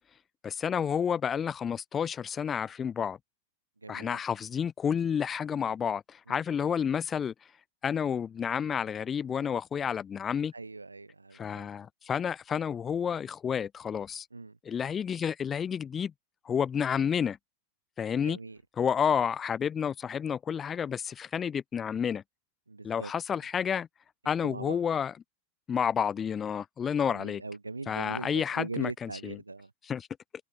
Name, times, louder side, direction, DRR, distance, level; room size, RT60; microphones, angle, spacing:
voice 1, 0.4-3.2 3.9-7.3 7.8-10.5 11.3-14.3 14.6-16.1 16.4-17.4 18.0-18.4 18.8-22.2 22.8-23.9 24.2-25.1 25.7-27.4 27.9-29.4 29.8-30.1, left 7 dB, 20° left, 0.4 m, -30 dB
voice 2, 3.8-4.2 6.3-6.4 10.5-11.7 14.3-14.6 18.2-18.6 22.7-23.1 24.4-24.8 27.1-29.7, right 3 dB, 80° right, 0.5 m, -40 dB
open air
figure-of-eight pair, 90°, 0 cm